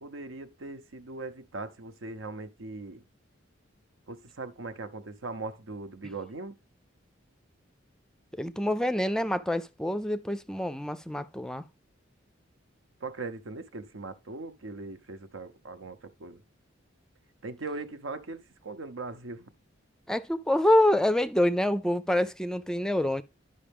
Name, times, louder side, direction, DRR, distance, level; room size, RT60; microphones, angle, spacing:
voice 1, 0.0-3.0 4.1-6.6 13.0-16.4 17.4-19.5, right 3 dB, 90° right, 0.8 m, -40 dB
voice 2, 8.3-11.6 20.1-23.2, left 1 dB, 5° left, 0.4 m, -26 dB
11.0 x 5.4 x 3.5 m
head